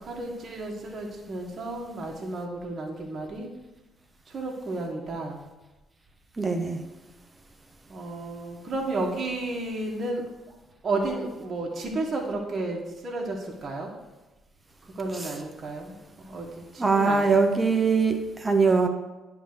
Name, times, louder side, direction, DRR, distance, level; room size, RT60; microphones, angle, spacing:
voice 1, 0.1-3.5 4.3-5.4 7.9-10.2 10.8-13.9 14.9-17.3, right 2 dB, 45° right, -1 dB, 1.7 m, -32 dB
voice 2, 6.4-6.8 16.8-18.9, right 4 dB, 30° right, 5 dB, 1.3 m, -22 dB
10.0 x 3.7 x 6.6 m, 1.1 s
hypercardioid pair, 50°, 0 cm